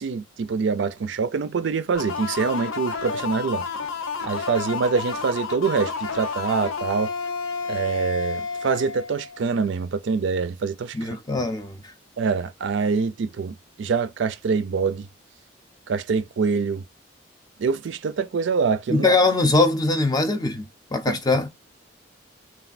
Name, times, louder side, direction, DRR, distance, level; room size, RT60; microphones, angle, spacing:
voice 1, 0.0-3.6 4.2-7.1 7.7-11.2 12.2-15.1 15.9-16.8 17.6-19.1 21.1-21.2, right 5 dB, 70° right, 0.4 m, -25 dB
sound 1, 1.9-9.5, left 5 dB, 85° left, 0.6 m, -30 dB
voice 2, 10.9-11.8 18.9-20.7 20.9-21.5, left 2 dB, 20° left, 0.4 m, -21 dB
3.2 x 2.3 x 2.4 m
head